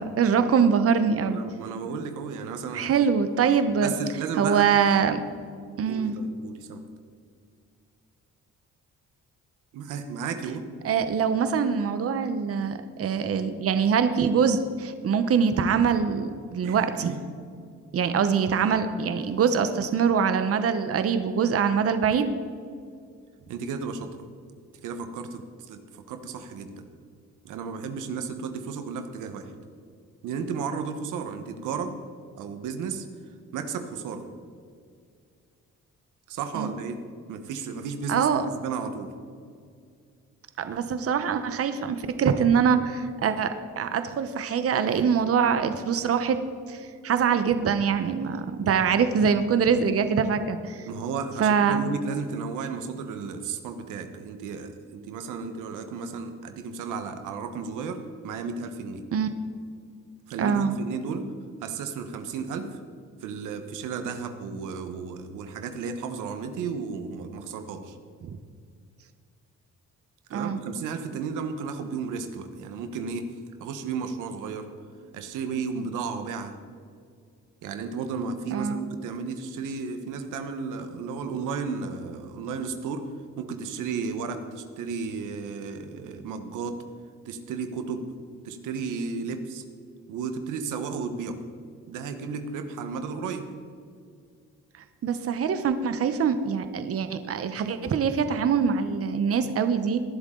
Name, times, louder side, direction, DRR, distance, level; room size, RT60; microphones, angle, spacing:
voice 1, 0.0-1.4 2.7-3.9 4.4-5.2 5.8-6.1 10.8-17.2 17.9-22.3 36.5-36.7 38.1-38.5 40.6-46.4 46.7-50.9 51.4-51.9 59.1-59.3 60.4-60.7 68.2-68.3 70.3-70.6 78.5-78.8 95.0-100.0, right 6 dB, 50° right, 10 dB, 0.9 m, -24 dB
voice 2, 1.3-2.9 3.8-4.7 5.9-6.8 9.7-10.6 16.6-17.1 23.5-24.1 24.8-26.9 27.4-29.5 30.2-31.9 32.4-33.1 33.5-34.3 36.3-37.0 37.3-38.3 38.6-39.1 50.9-59.0 60.3-61.3 61.6-62.8 63.2-68.0 70.3-73.3 73.6-74.7 75.1-76.5 77.6-83.0 83.4-86.8 87.2-88.0 88.4-89.6 90.1-91.4 91.9-93.5, right 5 dB, 90° right, 7 dB, 1.2 m, -33 dB
19.0 x 11.0 x 3.8 m, 2.2 s
cardioid pair, 90°, 30 cm